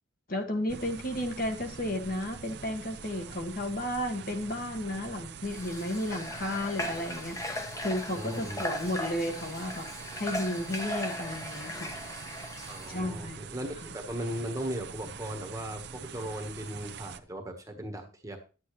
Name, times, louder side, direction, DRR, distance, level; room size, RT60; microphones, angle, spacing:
voice 1, 0.3-9.9 10.1-11.9 12.9-13.4, left 1 dB, 45° left, 3 dB, 1.5 m, -33 dB
sound 1, 0.7-17.2, right 6 dB, 55° right, 0.6 m, -45 dB
Water / Water tap faucet, 5.5-13.0, left 1 dB, 15° left, 1.0 m, -38 dB
voice 2, 7.9-8.8 12.7-13.7 13.9-18.4, right 1 dB, 15° right, 4 dB, 1.2 m, -37 dB
11.0 x 8.4 x 3.1 m, 0.34 s
head